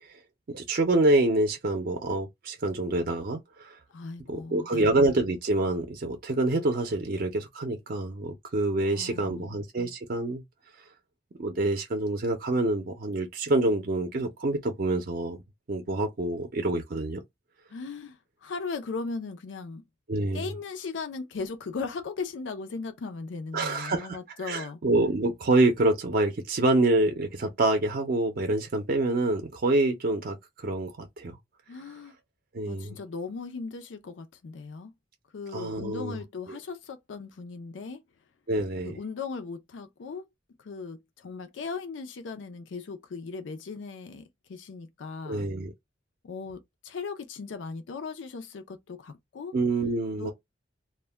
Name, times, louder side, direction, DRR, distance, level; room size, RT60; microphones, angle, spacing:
voice 1, 0.5-3.8 4.3-10.4 11.4-15.4 15.7-17.2 20.1-20.5 23.5-24.2 24.5-31.4 32.5-33.0 35.5-36.2 36.5-36.6 38.5-39.0 45.3-45.7 49.5-50.3, right 2 dB, 50° right, 0.5 m, -26 dB
voice 2, 3.9-5.0 8.8-9.6 17.7-19.8 20.3-24.8 31.7-32.2 32.7-34.9 35.3-38.0 38.8-40.3 40.6-45.5 46.2-49.5 50.2-50.3, left 4 dB, 90° left, 0.4 m, -38 dB
2.2 x 2.1 x 3.2 m
head